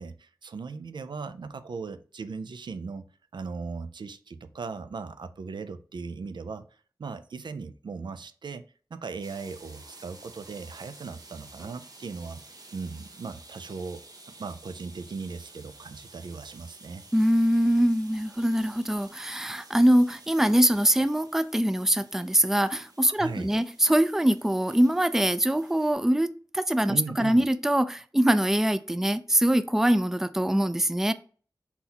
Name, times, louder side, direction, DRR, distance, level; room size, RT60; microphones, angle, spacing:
voice 1, 0.0-3.1 3.3-8.6 8.9-12.4 12.7-14.0 14.4-17.0 23.1-23.5 26.9-27.5, right 4 dB, 90° right, 0.4 m, -38 dB
sound 1, 9.2-25.9, right 2 dB, 60° right, 1.0 m, -51 dB
voice 2, 17.1-31.1, right 1 dB, 5° right, 0.3 m, -23 dB
4.1 x 4.0 x 2.8 m
wide cardioid pair, 65°, 8 cm